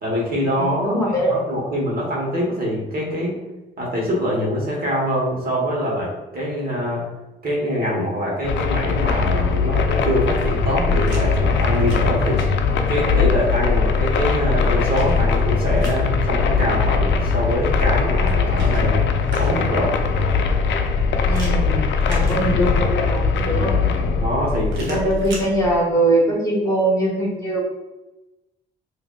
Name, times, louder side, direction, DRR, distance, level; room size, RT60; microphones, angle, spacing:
voice 1, 0.0-0.9 1.2-3.4 3.8-7.0 7.4-12.4 12.9-19.1 19.4-19.9 24.2-25.0, equal, 50° right, -3 dB, 1.3 m, -24 dB
voice 2, 0.6-1.4 21.2-23.8 24.8-27.6, right 1 dB, 15° left, -5 dB, 1.5 m, -22 dB
sound 1, 8.4-25.8, left 5 dB, 70° left, 0.5 m, -20 dB
sound 2, 10.2-11.2 11.5-12.5 14.2-16.0 18.0-19.8 21.3-22.9 24.7-25.5, right 2 dB, 70° right, 1.3 m, -40 dB
4.8 x 2.6 x 2.3 m, 1.0 s
cardioid pair, 90°, 20 cm